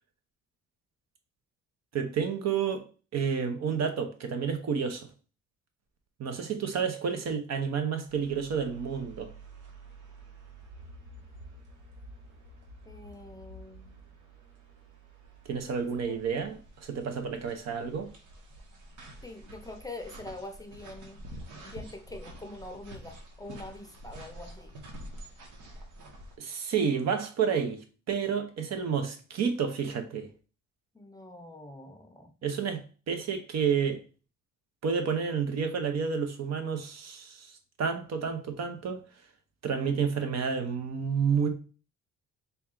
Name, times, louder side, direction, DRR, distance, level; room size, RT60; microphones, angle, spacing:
voice 1, 1.9-2.8 3.1-5.1 6.2-9.3 15.4-18.1 26.4-30.3 32.4-34.0 34.8-39.0 39.6-41.5, right 6 dB, 60° right, 0.8 m, -30 dB
sound 1, 8.1-26.4, right 1 dB, 85° right, 1.1 m, -48 dB
voice 2, 12.8-14.0 16.1-16.2 19.2-21.2 21.6-24.7 30.9-32.3, left 2 dB, 10° left, 0.6 m, -44 dB
4.1 x 2.3 x 3.7 m
cardioid pair, 90°, 30 cm